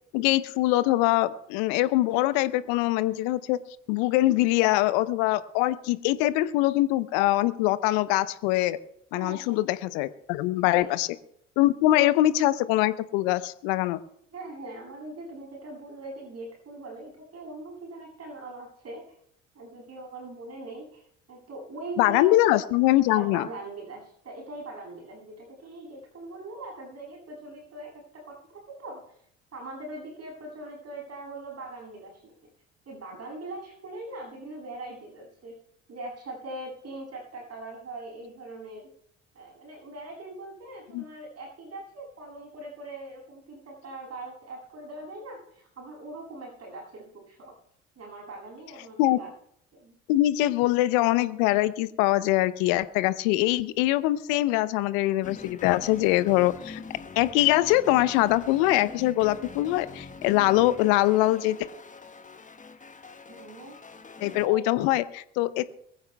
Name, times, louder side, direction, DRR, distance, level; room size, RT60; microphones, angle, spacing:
voice 1, 0.1-3.6 3.9-8.8 9.1-11.1 11.6-14.0 22.0-23.5 40.9-41.0 49.0-49.2 50.1-56.8 57.2-61.6 64.2-65.6, left 16 dB, 65° left, 15 dB, 0.8 m, -23 dB
voice 2, 9.1-9.6 10.7-10.9 14.3-19.0 19.5-22.6 23.1-29.0 29.5-32.3 32.9-35.5 35.9-38.9 39.3-47.5 48.0-49.3 49.7-50.0 63.3-64.6, right 2 dB, 40° right, -1 dB, 7.8 m, -41 dB
sound 1, 55.2-64.5, left 4 dB, 20° left, 1.3 m, -44 dB
23.0 x 15.5 x 2.3 m, 0.69 s
figure-of-eight pair, 55°, 37 cm